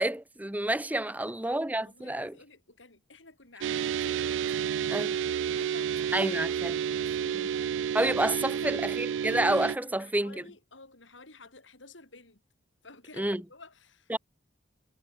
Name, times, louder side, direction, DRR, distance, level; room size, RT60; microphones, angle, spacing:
voice 1, 0.0-2.3 4.9-5.1 6.1-6.7 7.3-7.5 7.9-10.4 13.2-13.4 14.1-14.2, right 1 dB, 10° right, 0.9 m, -29 dB
voice 2, 1.1-5.1 5.6-8.1 8.4-8.9 9.8-12.4 12.8-14.2, left 3 dB, 80° left, 7.8 m, -52 dB
sound 1, 3.6-9.8, right 8 dB, 75° right, 0.3 m, -30 dB
head